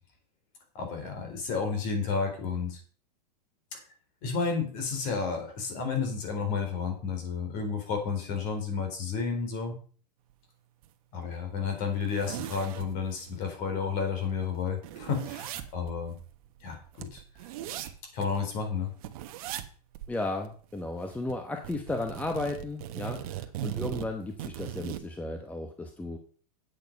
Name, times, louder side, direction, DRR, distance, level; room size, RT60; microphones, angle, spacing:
voice 1, 0.7-2.8 3.7-3.8 4.2-9.8 11.1-16.1 16.6-17.2 17.8-18.9, left 5 dB, 40° left, 5 dB, 4.0 m, -31 dB
sound 1, 10.8-10.9 11.3-11.4 11.8-13.4 13.8-13.9 14.1-18.5 19.0-19.7 19.9-20.1 20.4-21.4 21.6-25.1, right 12 dB, 55° right, 1.3 m, -39 dB
voice 2, 20.1-26.2, left 2 dB, 5° left, 4 dB, 0.9 m, -34 dB
8.9 x 8.6 x 5.2 m, 0.42 s
hypercardioid pair, 140°, 21 cm